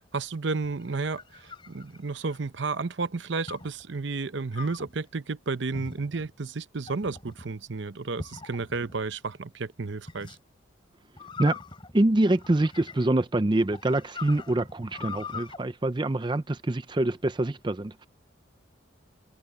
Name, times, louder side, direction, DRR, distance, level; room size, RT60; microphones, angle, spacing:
voice 1, 0.1-10.4, right 4 dB, 65° right, 0.8 m, -32 dB
sound 1, 0.7-2.5 3.5-3.8 4.5-5.0 5.7-6.3 6.9-7.5 8.2-9.0 10.1-10.4 11.2-13.2 13.7-15.6, left 4 dB, 25° left, 3.6 m, -42 dB
voice 2, 11.9-18.1, right 1 dB, 25° right, 0.5 m, -25 dB
head